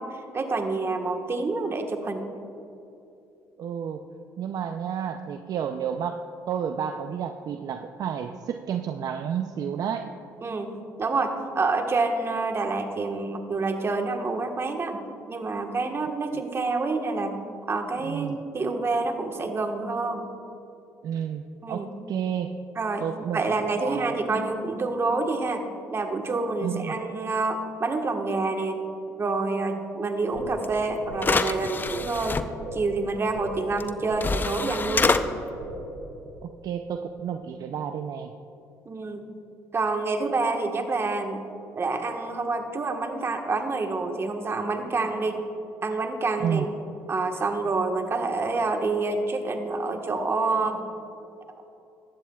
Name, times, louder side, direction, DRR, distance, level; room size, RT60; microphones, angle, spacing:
voice 1, 0.0-2.3 10.4-10.7 11.0-17.4 17.7-20.3 21.6-21.9 22.7-23.0 23.3-25.6 25.9-28.8 29.2-32.4 32.7-35.1 38.8-39.2 39.7-41.4 41.7-45.5 45.8-46.6 47.1-50.8, right 3 dB, 35° right, 4 dB, 1.3 m, -27 dB
voice 2, 3.6-4.0 4.4-10.1 18.0-18.4 21.0-22.6 23.0-24.2 26.6-27.0 36.4-38.3 46.4-46.7, right 8 dB, 60° right, 7 dB, 0.5 m, -31 dB
sound 1, 30.3-36.3, right 1 dB, 85° right, 1.7 m, -39 dB
sound 2, 30.6-30.7 31.2-32.4 33.8-33.9 34.2-35.2, left 4 dB, 25° left, 0.6 m, -25 dB
16.5 x 12.5 x 2.3 m, 2.8 s
supercardioid pair, 65°, 7 cm